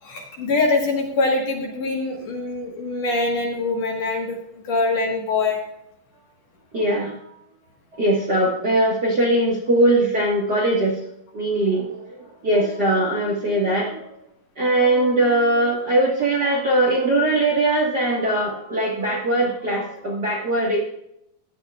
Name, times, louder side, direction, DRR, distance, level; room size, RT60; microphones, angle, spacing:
voice 1, 0.0-4.4 4.6-5.6, left 3 dB, 60° left, 0 dB, 2.5 m, -23 dB
voice 2, 6.7-7.2 7.9-11.0 11.3-14.0 14.6-20.8, right 1 dB, 45° right, -4 dB, 1.5 m, -21 dB
15.0 x 10.5 x 2.4 m, 0.75 s
omnidirectional pair, 3.8 m